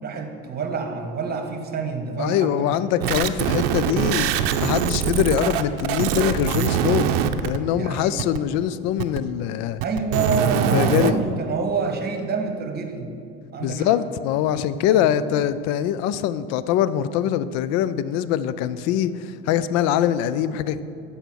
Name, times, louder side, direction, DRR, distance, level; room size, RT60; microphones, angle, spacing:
voice 1, 0.0-2.8 3.5-3.6 7.7-8.2 9.8-13.1 13.5-14.0 14.9-15.1, right 4 dB, 35° right, 5 dB, 1.6 m, -27 dB
voice 2, 2.2-4.3 4.6-7.1 7.4-9.8 10.7-11.2 13.6-20.8, left 10 dB, 60° left, 15 dB, 0.5 m, -23 dB
sound 1, 3.0-7.6 8.2-8.4 9.0-9.2 9.8-11.1, right 9 dB, 75° right, 0.6 m, -23 dB
10.0 x 5.7 x 6.2 m, 2.4 s
hypercardioid pair, 75°, 29 cm